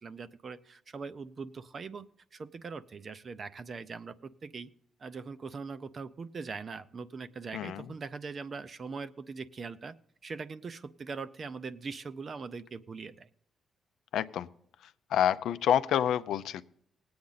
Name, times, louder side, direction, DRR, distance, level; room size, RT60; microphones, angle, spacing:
voice 1, 0.0-4.1 4.4-4.7 5.0-10.0 10.2-13.3, right 4 dB, 35° right, 13 dB, 0.5 m, -41 dB
voice 2, 7.5-7.8 14.1-14.5 15.1-16.6, left 10 dB, 80° left, 13 dB, 0.5 m, -28 dB
19.0 x 8.6 x 4.0 m, 0.69 s
cardioid pair, 155°, 0 cm